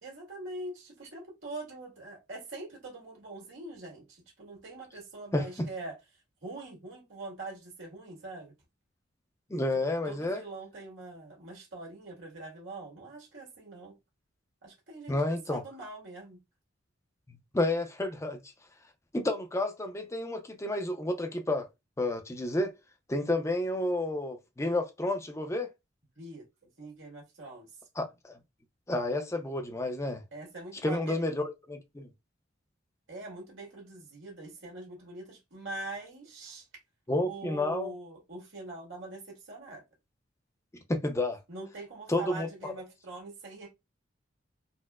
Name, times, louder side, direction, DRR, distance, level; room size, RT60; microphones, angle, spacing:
voice 1, 0.0-5.9 6.4-8.5 10.1-13.9 14.6-16.4 26.2-26.5 26.8-27.7 30.3-31.2 33.1-36.7 37.3-39.8 41.5-43.7, right 2 dB, 90° right, 1.7 m, -43 dB
voice 2, 9.5-10.4 15.1-15.6 17.3-18.4 19.1-21.7 22.0-22.7 23.1-25.7 28.0-28.4 28.9-30.2 30.8-32.1 37.1-37.9 40.9-41.4 42.1-42.7, left 2 dB, 15° left, 0.5 m, -30 dB
4.1 x 2.1 x 2.3 m
head